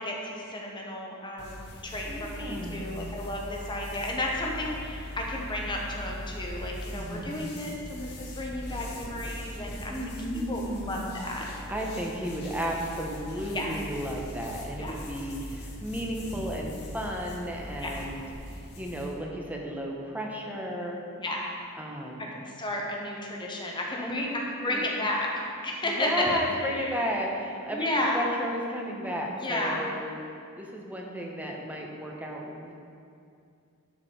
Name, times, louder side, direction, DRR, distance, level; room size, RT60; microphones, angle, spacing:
voice 1, 0.0-11.5 13.5-13.8 14.8-14.9 17.8-17.9 21.2-21.4 22.2-22.3 22.6-27.1 27.7-28.3 29.4-29.8, left 1 dB, 20° left, -1 dB, 1.1 m, -32 dB
sound 1, 1.4-19.2, left 1 dB, 50° left, 1.4 m, -41 dB
voice 2, 2.1-2.9 6.9-7.7 9.9-11.2 11.7-21.0 21.7-22.3 24.0-24.4 24.7-24.9 25.8-30.1 30.6-32.7, equal, 5° right, -1 dB, 1.0 m, -34 dB
12.0 x 4.9 x 5.0 m, 2.4 s
head